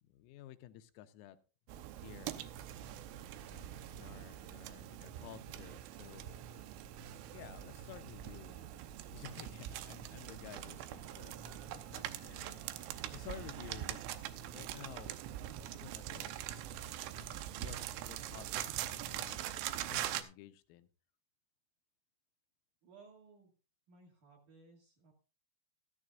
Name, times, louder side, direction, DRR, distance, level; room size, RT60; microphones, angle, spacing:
voice 1, 0.0-1.4 2.0-2.3 3.4-6.3 7.3-8.6 9.1-12.6 13.1-14.0 14.5-15.2 15.7-16.3 17.1-19.6 19.9-20.9, left 12 dB, 85° left, 9 dB, 3.5 m, -53 dB
sound 1, 1.7-20.2, right 12 dB, 80° right, 3.1 m, -43 dB
voice 2, 22.8-23.5 23.9-25.1, right 4 dB, 50° right, 0 dB, 2.9 m, -60 dB
14.0 x 13.5 x 2.5 m, 0.33 s
omnidirectional pair, 5.9 m